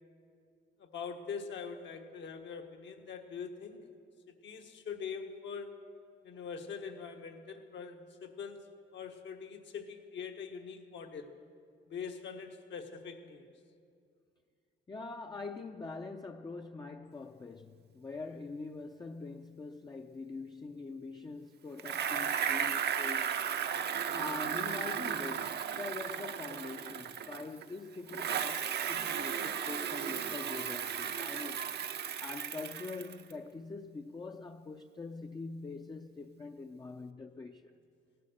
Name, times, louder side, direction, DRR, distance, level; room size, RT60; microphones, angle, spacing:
voice 1, 0.8-3.8 4.3-5.8 6.2-11.3 11.9-13.4, left 6 dB, 65° left, 1.4 m, -43 dB
voice 2, 14.9-23.4 24.1-31.6 32.2-37.7, left 3 dB, 20° left, 0.5 m, -44 dB
Bicycle, 21.8-27.7 28.1-33.3, right 8 dB, 55° right, 0.7 m, -35 dB
17.0 x 11.0 x 6.5 m
cardioid pair, 90°, 20 cm